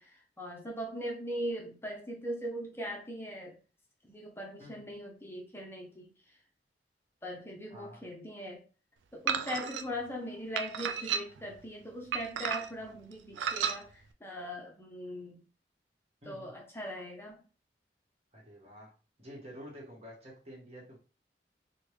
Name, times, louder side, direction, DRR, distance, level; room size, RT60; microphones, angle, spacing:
voice 1, 0.0-3.6 4.0-6.4 7.2-8.6 9.1-15.4 16.2-17.4, equal, 15° left, 0 dB, 0.5 m, -40 dB
voice 2, 7.7-8.0 16.2-16.5 18.3-18.9 19.2-21.0, equal, 35° right, -2 dB, 1.1 m, -49 dB
sound 1, 9.3-9.8 10.6-11.5 12.1-12.8 13.4-13.8, right 7 dB, 90° right, 0.3 m, -33 dB
3.5 x 2.2 x 3.1 m, 0.36 s
head